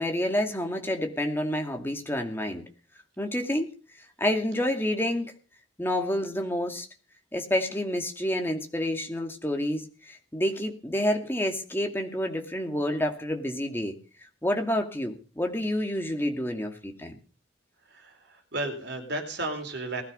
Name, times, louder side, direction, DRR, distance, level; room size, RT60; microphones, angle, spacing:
voice 1, 0.0-2.6 3.2-3.7 4.2-5.3 5.8-6.9 7.3-14.0 14.4-17.2, left 1 dB, 10° left, 4 dB, 2.4 m, -28 dB
voice 2, 17.8-20.0, right 2 dB, 55° right, 5 dB, 4.3 m, -33 dB
19.5 x 12.5 x 5.6 m, 0.37 s
head